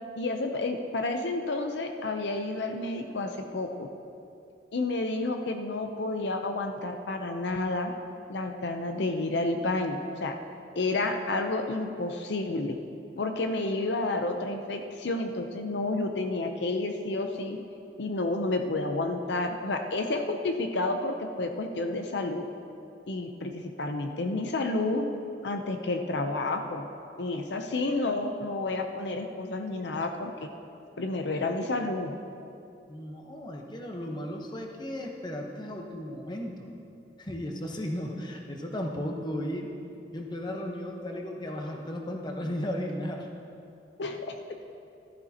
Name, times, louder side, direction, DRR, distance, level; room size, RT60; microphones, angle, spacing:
voice 1, 0.2-3.9 4.7-7.9 8.3-10.3 10.7-12.8 13.2-17.6 18.0-22.5 23.1-25.1 25.4-26.9 27.2-30.5 31.0-32.1 44.0-44.3, left 2 dB, 75° left, 5 dB, 0.7 m, -30 dB
voice 2, 32.9-36.7 37.2-39.7 40.1-43.3, equal, 25° left, 1 dB, 1.0 m, -35 dB
15.0 x 12.5 x 2.9 m, 2.6 s
head